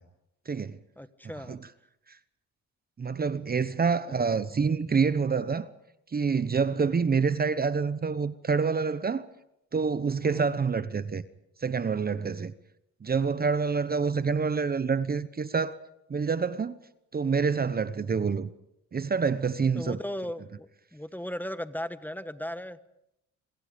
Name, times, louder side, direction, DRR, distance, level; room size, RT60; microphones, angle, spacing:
voice 1, 0.5-0.8 1.5-1.6 2.1-2.2 3.0-5.7 6.1-9.3 9.7-11.2 11.6-12.5 13.0-15.8 16.1-16.7 17.1-18.5 18.9-20.0, right 5 dB, 30° right, 1.0 m, -27 dB
voice 2, 1.0-1.6 4.1-4.2 6.7-7.1 10.2-10.6 14.0-14.1 19.7-22.8, equal, 5° left, 1.3 m, -37 dB
27.5 x 25.0 x 5.2 m
cardioid pair, 90°, 30 cm